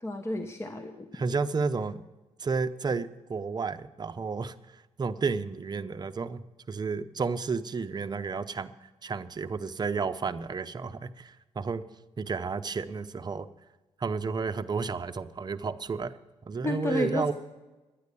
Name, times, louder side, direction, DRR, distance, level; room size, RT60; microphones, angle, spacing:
voice 1, 0.0-1.1 16.6-17.3, left 1 dB, 20° left, 6 dB, 1.0 m, -31 dB
voice 2, 1.1-2.0 2.4-4.5 5.0-6.4 6.7-8.7 9.0-11.8 12.2-13.5 14.0-16.2 16.4-17.3, right 4 dB, 35° right, 11 dB, 0.7 m, -31 dB
11.5 x 9.5 x 6.9 m, 1.1 s
cardioid pair, 80°, 12 cm